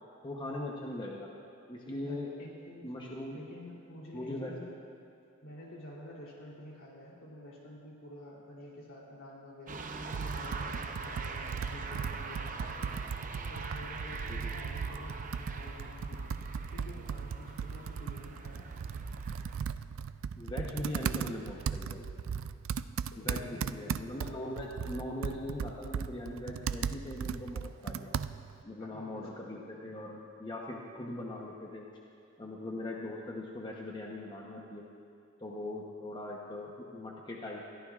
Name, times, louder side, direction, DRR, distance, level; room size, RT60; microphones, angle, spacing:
voice 1, 0.2-1.3 1.7-2.3 2.8-3.4 4.1-4.5 14.3-14.5 20.3-22.1 23.1-28.1 28.6-31.9 32.4-34.9 35.4-37.7, left 1 dB, 25° left, -2 dB, 1.0 m, -40 dB
voice 2, 2.0-2.9 3.3-4.7 5.4-16.4 16.7-18.8 23.1-24.0 28.8-29.3, left 1 dB, 70° left, -3 dB, 3.3 m, -49 dB
sound 1, 9.7-19.6, right 3 dB, 40° right, 0.7 m, -42 dB
Computer keyboard, 10.1-28.6, right 6 dB, 70° right, 0.3 m, -37 dB
21.0 x 14.0 x 2.5 m, 2.8 s
head